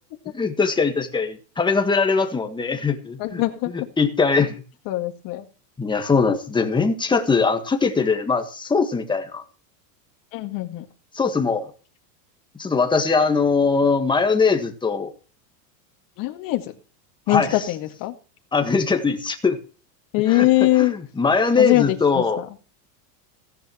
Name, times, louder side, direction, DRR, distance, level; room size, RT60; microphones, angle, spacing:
voice 1, 0.3-3.4 3.7-4.6 5.8-9.4 11.1-11.7 12.6-15.1 17.3-17.5 18.5-19.6 20.3-20.4 20.8-22.4, left 4 dB, 10° left, 1.5 m, -21 dB
voice 2, 3.2-3.9 4.9-5.5 10.3-10.9 16.2-16.8 17.3-18.1 20.1-21.0 21.6-22.5, left 18 dB, 45° left, 2.1 m, -22 dB
17.0 x 10.0 x 3.1 m
supercardioid pair, 150°, 48 cm